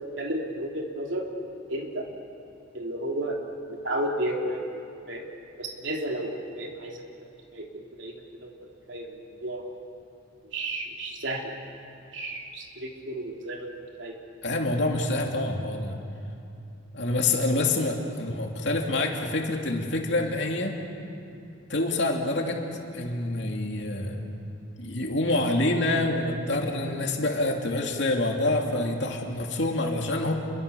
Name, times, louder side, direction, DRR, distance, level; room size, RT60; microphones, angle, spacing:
voice 1, 0.2-1.2 1.7-2.1 2.7-3.4 3.7-4.6 5.1-5.3 5.6-7.0 7.5-8.1 8.4-8.5 8.9-9.6 10.4-11.5 12.1-13.7 14.0-14.1 21.3-21.4, right 1 dB, 70° right, 0 dB, 3.3 m, -32 dB
voice 2, 14.4-16.0 16.9-20.7 21.7-22.6 22.9-24.2 24.8-30.3, left 2 dB, 60° left, 1 dB, 2.8 m, -26 dB
29.5 x 23.0 x 7.1 m, 2.6 s
head